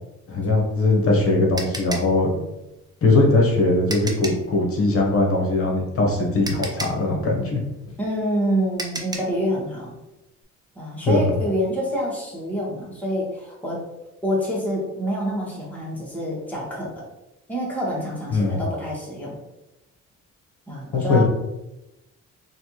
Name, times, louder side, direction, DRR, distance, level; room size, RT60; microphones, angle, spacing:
voice 1, 0.3-2.3 3.0-7.6 11.1-11.2 18.3-18.6 20.9-21.2, left 2 dB, 50° left, 0 dB, 1.0 m, -20 dB
sound 1, 0.7-4.5 5.9-6.0 6.4-9.4, right 2 dB, 15° right, 0.5 m, -34 dB
voice 2, 8.0-9.9 10.7-13.8 14.2-16.9 17.5-19.4 20.7-21.2, equal, 5° left, -6 dB, 1.4 m, -27 dB
3.3 x 2.6 x 2.9 m, 0.94 s
cardioid pair, 90°, 30 cm